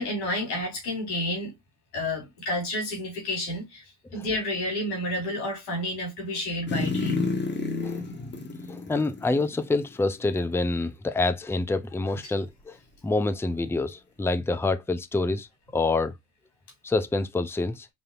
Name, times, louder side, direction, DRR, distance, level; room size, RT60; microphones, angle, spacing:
voice 1, 0.0-1.5 1.9-3.8 4.1-7.2 12.2-12.3, left 1 dB, 85° left, 2.9 m, -30 dB
sound 1, 6.7-10.0 10.4-10.5, left 3 dB, 30° left, 1.4 m, -30 dB
voice 2, 8.7-12.8 13.0-15.5 15.7-16.1 16.8-17.9, left 3 dB, 5° left, 0.5 m, -27 dB
5.2 x 2.7 x 2.5 m
supercardioid pair, 60°, 37 cm